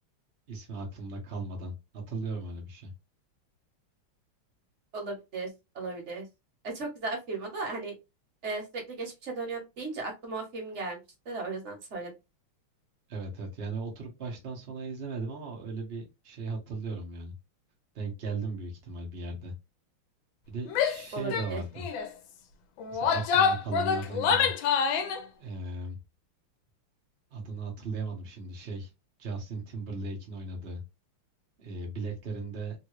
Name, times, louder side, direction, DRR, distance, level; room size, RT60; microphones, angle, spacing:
voice 1, 0.5-2.9 13.1-17.3 17.9-19.5 20.5-21.9 22.9-24.5 25.4-26.0 27.3-28.9 29.2-30.8 31.6-32.7, right 3 dB, 70° right, -1 dB, 0.5 m, -37 dB
voice 2, 4.9-5.5 5.7-6.2 6.6-7.9 8.4-11.0 11.3-12.1 21.1-21.6, right 3 dB, 50° right, 0 dB, 0.9 m, -36 dB
Female speech woman speaking / Yell, 20.7-21.0 21.3-21.5 21.8-22.1 22.8-25.2, left 6 dB, 75° left, 1.2 m, -26 dB
3.4 x 2.3 x 3.0 m, 0.25 s
omnidirectional pair, 2.4 m